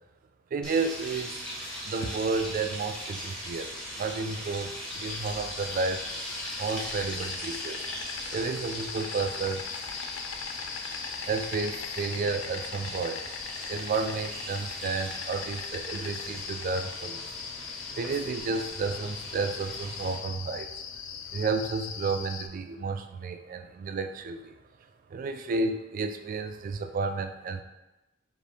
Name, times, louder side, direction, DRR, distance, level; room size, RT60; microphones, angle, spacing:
voice 1, 0.5-1.5 1.9-6.0 6.6-7.9 8.3-9.6 11.3-13.2 13.7-17.3 18.0-20.8 21.3-24.5 25.1-27.6, right 4 dB, 45° right, 7 dB, 0.3 m, -31 dB
sound 1, 0.6-20.2, equal, 5° left, 0.9 m, -40 dB
Insect, 4.9-22.5, left 7 dB, 70° left, 0.4 m, -39 dB
5.2 x 2.5 x 3.2 m, 0.98 s
head